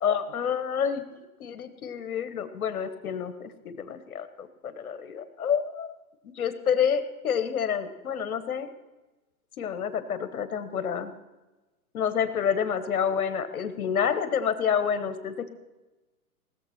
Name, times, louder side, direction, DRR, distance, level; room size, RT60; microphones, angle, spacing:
voice 1, 0.0-1.0 1.4-5.9 6.2-8.7 9.6-11.1 11.9-15.5, left 7 dB, 70° left, 11 dB, 1.5 m, -28 dB
18.5 x 7.2 x 6.0 m, 1.1 s
hypercardioid pair, 145°, 45 cm